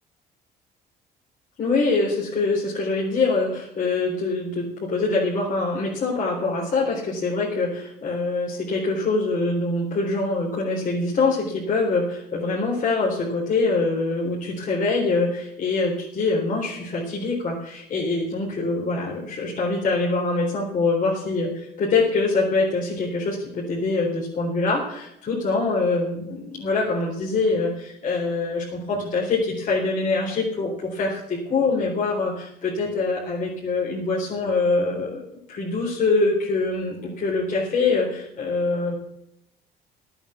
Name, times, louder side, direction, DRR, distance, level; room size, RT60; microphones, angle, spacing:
voice 1, 1.6-35.2 35.5-39.0, left 3 dB, 50° left, -4 dB, 4.0 m, -24 dB
13.0 x 8.9 x 7.1 m, 0.79 s
cardioid pair, 110°, 17 cm